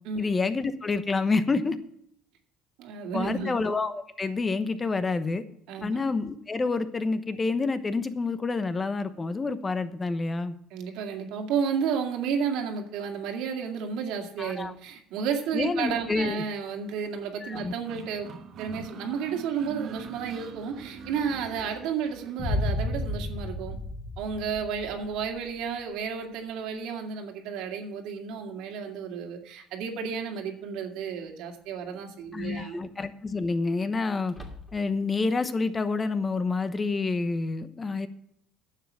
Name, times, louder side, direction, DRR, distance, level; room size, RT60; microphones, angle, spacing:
voice 1, 0.2-1.8 3.1-5.4 5.8-10.5 14.4-14.7 15.5-16.4 17.4-17.7 32.3-34.3 34.7-38.1, left 3 dB, 25° left, 12 dB, 1.0 m, -28 dB
voice 2, 2.8-3.5 5.7-5.9 10.7-18.3 18.6-23.8 24.2-32.8, right 6 dB, 80° right, 3 dB, 2.2 m, -32 dB
sound 1, 17.5-22.4, right 6 dB, 55° right, 1.3 m, -42 dB
Boom, 22.4-25.4, left 1 dB, 45° left, 2.1 m, -31 dB
sound 2, 29.7-29.8 31.6-32.0 32.3-32.4 34.2-35.1, left 1 dB, 5° left, 2.7 m, -46 dB
10.0 x 7.3 x 7.4 m, 0.69 s
cardioid pair, 105°, 0 cm